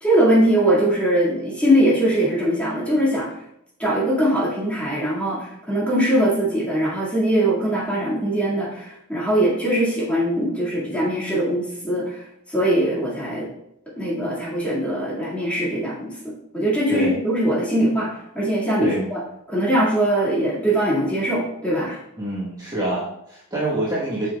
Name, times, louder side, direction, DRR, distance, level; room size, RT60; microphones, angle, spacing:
voice 1, 0.0-3.3 3.8-12.2 12.5-13.5 14.0-16.1 16.5-18.1 18.3-19.2 19.5-22.0, right 1 dB, 5° left, -7 dB, 2.0 m, -21 dB
voice 2, 22.2-24.3, right 1 dB, 15° right, -8 dB, 1.2 m, -26 dB
8.6 x 5.5 x 2.3 m, 0.77 s
head